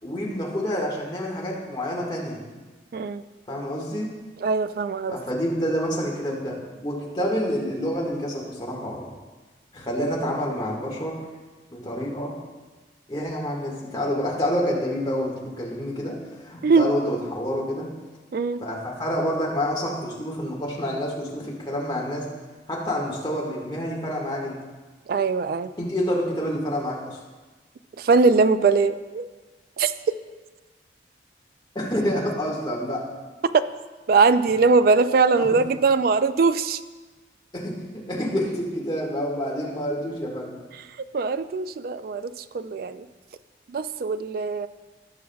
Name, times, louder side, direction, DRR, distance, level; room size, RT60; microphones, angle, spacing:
voice 1, 0.0-2.4 3.5-4.1 5.1-9.1 9.7-11.2 11.7-12.3 13.1-17.9 18.6-22.3 22.7-24.6 25.8-27.2 31.8-33.0 35.4-35.6 37.5-40.6, equal, 25° left, -4 dB, 1.7 m, -28 dB
voice 2, 2.9-3.2 4.4-5.2 16.6-16.9 18.3-18.6 25.1-25.7 28.0-29.3 29.8-29.9 34.1-36.8 41.1-43.1 43.7-44.7, right 4 dB, 50° right, 12 dB, 0.3 m, -21 dB
17.5 x 6.0 x 2.3 m, 1.3 s
head